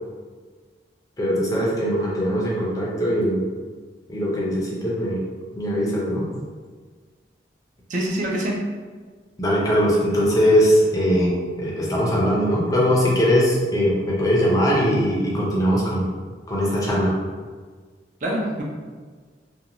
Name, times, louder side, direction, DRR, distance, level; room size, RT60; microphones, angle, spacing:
voice 1, 1.2-3.4 4.1-5.2 5.6-6.3 9.4-11.3 11.6-16.0 16.5-17.1, equal, 20° left, -5 dB, 0.5 m, -20 dB
voice 2, 7.9-8.6 18.2-18.6, right 1 dB, 45° right, -2 dB, 0.4 m, -25 dB
2.5 x 2.2 x 2.8 m, 1.5 s
head